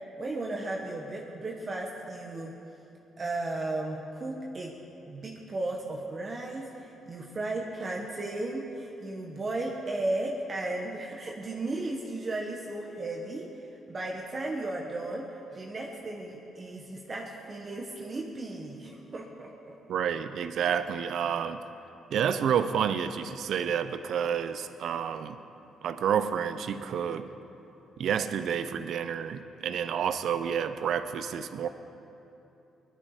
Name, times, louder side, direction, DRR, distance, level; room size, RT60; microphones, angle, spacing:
voice 1, 0.2-2.5 3.2-4.8 5.1-13.5 13.9-15.3 15.5-19.7, right 2 dB, 35° right, -1 dB, 1.5 m, -35 dB
voice 2, 19.9-21.6 22.1-25.4 25.8-27.3 28.0-31.7, right 8 dB, 70° right, 11 dB, 0.7 m, -29 dB
19.5 x 12.5 x 5.0 m, 2.9 s
cardioid pair, 90°, 0 cm